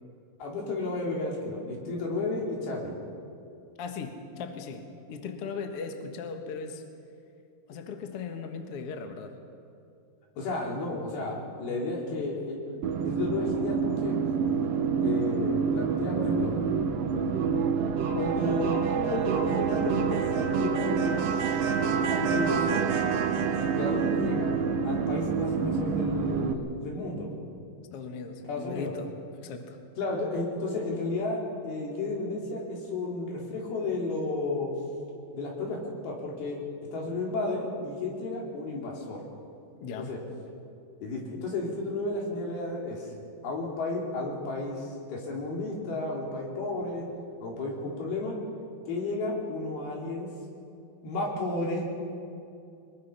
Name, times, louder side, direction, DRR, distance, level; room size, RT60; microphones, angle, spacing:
voice 1, 0.4-3.0 10.4-14.2 15.0-16.6 18.1-23.0 23.7-24.6 24.8-27.3 28.5-28.9 30.0-34.7 35.3-36.6 36.9-39.2 40.0-40.2 41.0-43.1 43.4-47.1 47.4-48.4 48.9-50.3 51.0-51.9, left 2 dB, 75° left, -1 dB, 5.0 m, -32 dB
voice 2, 3.8-6.8 7.7-9.3 23.4-23.8 27.9-29.1 29.4-29.8 39.8-40.1, left 5 dB, 55° left, 5 dB, 1.7 m, -38 dB
sound 1, 12.8-26.5, right 6 dB, 70° right, 2.5 m, -27 dB
22.5 x 21.0 x 5.7 m, 2.6 s
omnidirectional pair, 4.4 m